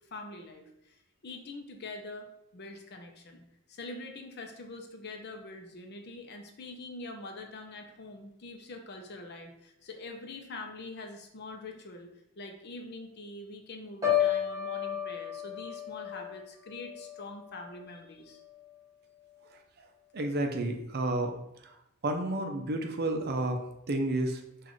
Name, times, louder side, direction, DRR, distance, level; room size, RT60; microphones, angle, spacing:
voice 1, 0.1-3.4 3.7-12.1 12.4-18.4, left 2 dB, 50° left, 3 dB, 0.6 m, -44 dB
Piano, 14.0-18.0 18.4-18.7, left 10 dB, 15° right, 1.5 m, -33 dB
voice 2, 20.1-21.3 22.0-23.6 23.9-24.4, right 2 dB, 50° right, 4 dB, 0.5 m, -30 dB
6.0 x 2.5 x 3.1 m, 0.81 s
head